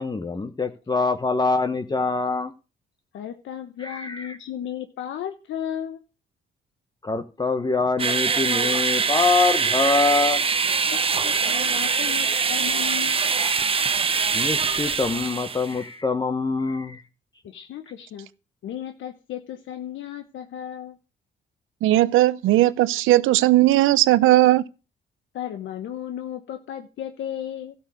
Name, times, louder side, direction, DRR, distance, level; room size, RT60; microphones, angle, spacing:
voice 1, 0.0-2.5 3.8-4.3 7.0-10.8 13.1-13.7 14.3-17.0, left 3 dB, 20° left, 1.1 m, -25 dB
voice 2, 3.1-6.0 10.8-13.2 17.4-18.3 18.6-21.0 25.3-27.7, left 10 dB, 75° left, 1.0 m, -34 dB
sound 1, 8.0-15.8, right 5 dB, 30° right, 0.8 m, -23 dB
voice 3, 21.8-24.6, right 15 dB, 90° right, 0.7 m, -17 dB
12.5 x 7.2 x 6.3 m
cardioid pair, 90°, 20 cm